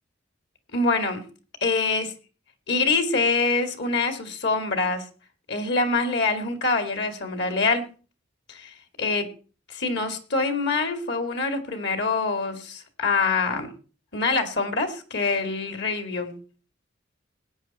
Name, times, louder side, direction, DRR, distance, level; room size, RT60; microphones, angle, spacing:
voice 1, 0.7-1.3 1.6-2.1 2.7-5.1 5.5-7.9 8.5-9.3 9.7-13.7 14.1-16.3, left 3 dB, 55° left, 8 dB, 2.4 m, -25 dB
20.0 x 9.2 x 4.3 m, 0.37 s
head